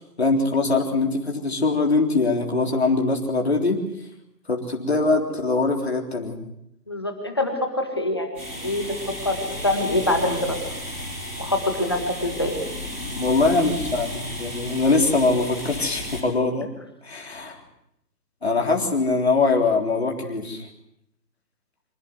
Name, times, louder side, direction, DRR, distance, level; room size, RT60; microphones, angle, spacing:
voice 1, 0.2-3.8 4.5-6.4 13.2-16.7 17.0-17.6 18.4-20.7, left 3 dB, 40° left, 2 dB, 3.8 m, -22 dB
voice 2, 6.9-10.6 11.4-12.6, left 1 dB, 15° left, 4 dB, 1.7 m, -25 dB
sound 1, 8.3-16.2, left 1 dB, 5° right, 3.6 m, -34 dB
26.0 x 15.0 x 9.4 m, 0.79 s
figure-of-eight pair, 180°, 49 cm